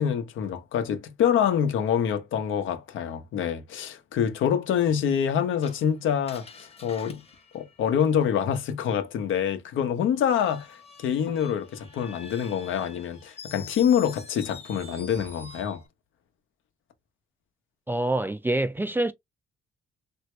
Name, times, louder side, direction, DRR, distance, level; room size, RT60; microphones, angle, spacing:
voice 1, 0.0-7.2 7.5-15.8, left 8 dB, 80° left, 0.8 m, -26 dB
Screech, 5.6-8.5 10.1-15.9, left 4 dB, 30° left, 1.0 m, -47 dB
voice 2, 17.9-19.1, right 1 dB, 10° right, 0.3 m, -26 dB
3.2 x 2.7 x 3.0 m
cardioid pair, 90°, 20 cm